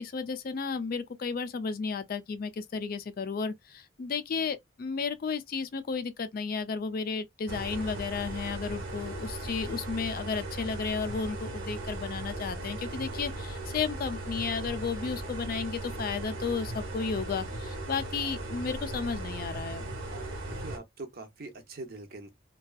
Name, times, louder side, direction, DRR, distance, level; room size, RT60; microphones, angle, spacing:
voice 1, 0.0-19.9, left 5 dB, 45° left, 0.3 m, -33 dB
sound 1, 7.5-20.8, right 1 dB, 70° right, 0.9 m, -37 dB
voice 2, 20.5-22.3, right 2 dB, 45° right, 0.6 m, -43 dB
2.5 x 2.3 x 2.3 m
head